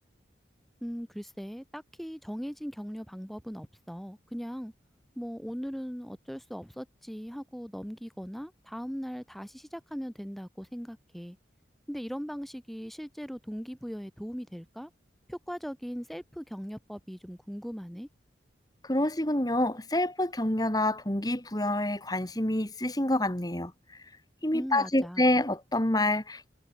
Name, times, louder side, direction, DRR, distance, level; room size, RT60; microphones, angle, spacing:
voice 1, 0.8-4.7 5.2-11.4 11.9-14.9 15.3-18.1 24.5-25.3, equal, ahead, 2.3 m, -39 dB
voice 2, 18.8-23.7 24.4-26.5, left 1 dB, 20° left, 2.7 m, -27 dB
head